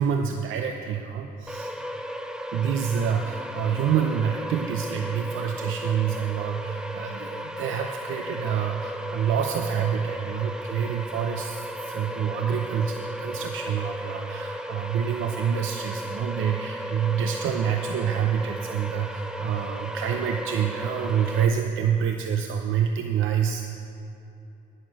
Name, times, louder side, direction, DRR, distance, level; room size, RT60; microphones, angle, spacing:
voice 1, 0.0-1.7 2.5-23.6, right 8 dB, 80° right, 5 dB, 0.6 m, -27 dB
sound 1, 1.5-21.5, equal, 5° right, 0.7 m, -35 dB
14.0 x 6.6 x 6.3 m, 2.8 s
cardioid pair, 90°, 20 cm